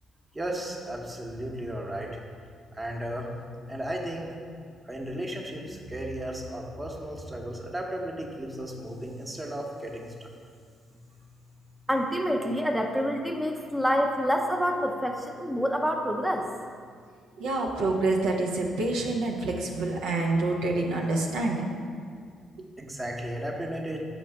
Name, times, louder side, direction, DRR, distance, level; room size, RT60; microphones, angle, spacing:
voice 1, 0.3-2.1 2.7-3.3 3.7-4.3 4.9-10.3 22.8-24.1, right 1 dB, 20° right, 1 dB, 1.0 m, -35 dB
voice 2, 11.9-16.5, equal, ahead, 2 dB, 0.6 m, -27 dB
voice 3, 17.4-21.7, right 2 dB, 70° right, -1 dB, 0.6 m, -27 dB
5.7 x 4.0 x 4.7 m, 2.1 s
figure-of-eight pair, 45°, 0 cm